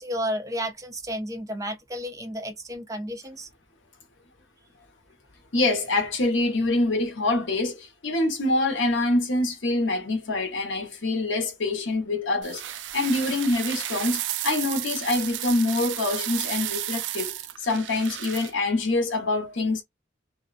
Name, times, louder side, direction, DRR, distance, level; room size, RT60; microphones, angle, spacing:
voice 1, 0.0-3.5, equal, 20° right, 0.6 m, -32 dB
voice 2, 5.5-17.3 17.6-19.8, left 2 dB, 80° left, 0.9 m, -25 dB
sound 1, 12.4-18.5, right 13 dB, 70° right, 0.4 m, -33 dB
2.8 x 2.1 x 2.4 m
head